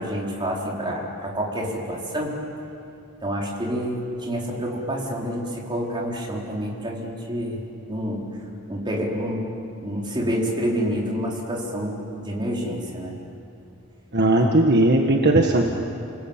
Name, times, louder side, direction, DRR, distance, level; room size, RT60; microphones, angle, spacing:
voice 1, 0.0-2.4 3.2-7.6 7.9-8.2 8.7-9.4 9.8-13.1 14.4-14.5, equal, 20° right, -2 dB, 4.4 m, -28 dB
voice 2, 14.1-15.7, right 1 dB, 50° right, 2 dB, 1.6 m, -18 dB
29.5 x 21.0 x 9.0 m, 2.7 s
head